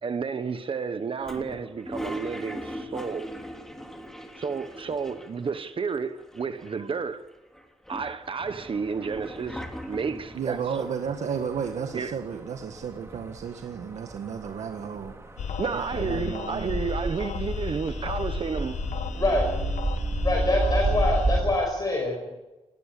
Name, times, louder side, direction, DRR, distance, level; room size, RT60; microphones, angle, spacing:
voice 1, 0.0-3.3 4.4-7.2 7.9-10.9 11.9-12.2 15.6-18.8, right 5 dB, 50° right, 1.2 m, -31 dB
Toilet flush, 1.2-5.6 5.9-6.0 6.2-7.0 7.5-10.4, equal, 5° left, 3.3 m, -40 dB
sound 1, 8.4-21.5, right 2 dB, 25° right, 3.4 m, -32 dB
voice 2, 10.3-15.1 15.6-16.8, right 7 dB, 90° right, 1.7 m, -33 dB
sound 2, 15.4-21.4, left 8 dB, 90° left, 1.5 m, -35 dB
voice 3, 19.1-19.5 20.2-22.3, left 2 dB, 35° left, 5.8 m, -25 dB
20.0 x 18.0 x 8.4 m
wide cardioid pair, 115°, 12 cm